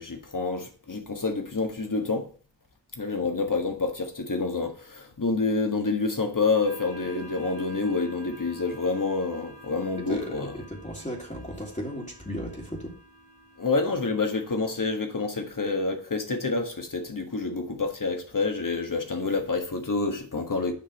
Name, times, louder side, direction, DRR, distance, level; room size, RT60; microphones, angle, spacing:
voice 1, 0.0-2.3 2.9-10.5 13.6-20.7, left 3 dB, 45° left, 1.5 m, -28 dB
sound 1, 6.6-14.8, right 1 dB, 70° left, 4.7 m, -48 dB
voice 2, 10.1-12.9, equal, 15° left, 2.0 m, -35 dB
7.4 x 5.4 x 5.2 m
wide cardioid pair, 65°, 43 cm